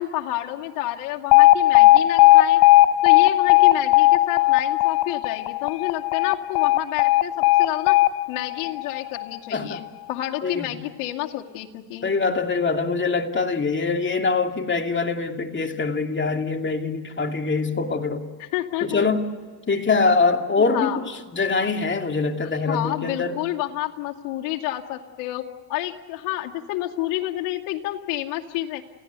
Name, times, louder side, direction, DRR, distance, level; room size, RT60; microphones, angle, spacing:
voice 1, 0.0-2.6 3.0-8.0 8.3-12.1 18.4-19.0 20.6-21.0 22.7-25.4 25.7-28.8, left 15 dB, 75° left, 1 dB, 2.4 m, -29 dB
Alarm, 1.3-9.4, left 17 dB, 55° left, 0.7 m, -16 dB
voice 2, 12.0-18.3 18.8-19.3 19.7-23.4, left 4 dB, 25° left, 4 dB, 2.6 m, -23 dB
30.0 x 16.5 x 8.2 m, 1.5 s
supercardioid pair, 95°, 48 cm